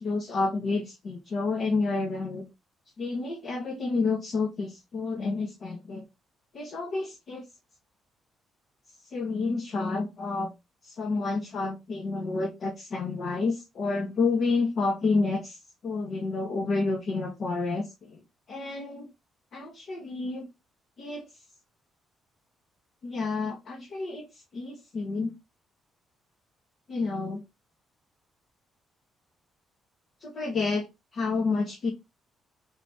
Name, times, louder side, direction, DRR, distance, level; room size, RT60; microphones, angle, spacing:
voice 1, 0.0-2.4 3.0-6.0 6.5-7.4 9.1-10.5 10.8-15.6 15.8-18.2 18.5-19.1 19.5-20.5 21.0-21.3 23.0-24.3 24.5-25.3 26.9-27.4 30.2-30.9 31.1-31.9, left 3 dB, 50° left, 1.2 m, -29 dB
4.0 x 2.8 x 4.7 m
cardioid pair, 155°, 0 cm